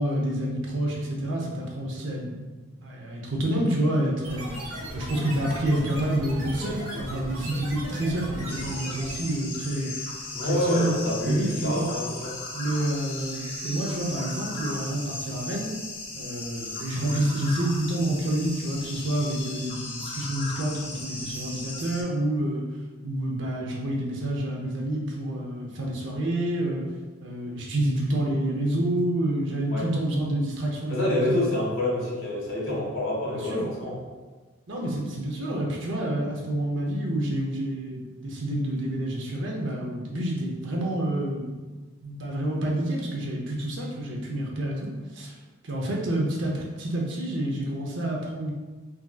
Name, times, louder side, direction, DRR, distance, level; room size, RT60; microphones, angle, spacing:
voice 1, 0.0-2.4 2.8-4.7 4.9-9.9 10.5-10.9 11.2-11.9 12.5-15.7 16.2-22.6 23.0-26.8 27.2-31.4 33.3-33.7 34.7-41.6 42.0-45.3 45.6-48.5, right 1 dB, 65° right, -1 dB, 0.7 m, -28 dB
sound 1, 4.2-9.4, equal, 90° right, 1.0 m, -36 dB
sound 2, 8.5-22.0, left 2 dB, 25° left, 0.5 m, -37 dB
voice 2, 10.3-12.3 29.7-29.9 30.9-34.0, left 1 dB, 75° left, -6 dB, 1.4 m, -27 dB
3.6 x 2.8 x 2.3 m, 1.3 s
head